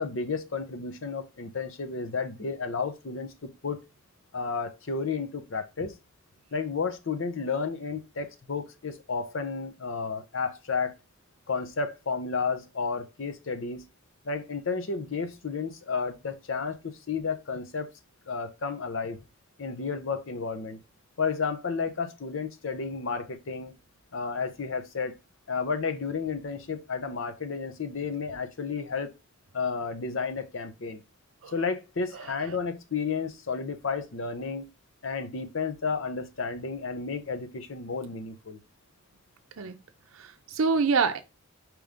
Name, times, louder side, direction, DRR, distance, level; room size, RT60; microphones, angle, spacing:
voice 1, 0.0-3.8 4.3-5.9 6.5-10.9 11.5-13.8 14.2-17.9 18.3-19.2 19.6-20.8 21.2-23.7 24.1-25.1 25.5-29.1 29.5-31.0 31.5-34.6 35.0-38.6, left 5 dB, 65° left, 0.7 m, -32 dB
voice 2, 40.1-41.2, right 5 dB, 75° right, 0.5 m, -26 dB
5.1 x 3.0 x 3.5 m
head